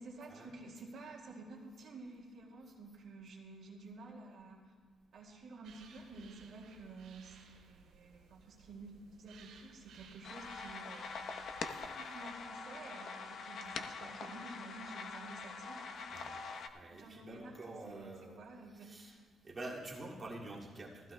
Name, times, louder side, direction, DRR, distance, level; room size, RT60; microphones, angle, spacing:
voice 1, 0.0-4.7 5.1-8.9 9.2-16.2 16.9-18.9, right 3 dB, 65° right, -2 dB, 2.2 m, -51 dB
sound 1, 5.6-11.9, right 6 dB, 85° right, 2.7 m, -60 dB
sound 2, 10.2-16.7, left 4 dB, 65° left, 0.8 m, -44 dB
voice 2, 16.7-18.4 18.7-19.2 19.4-21.1, right 2 dB, 30° right, -4 dB, 2.2 m, -47 dB
19.5 x 15.0 x 2.2 m, 1.5 s
cardioid pair, 90°, 0 cm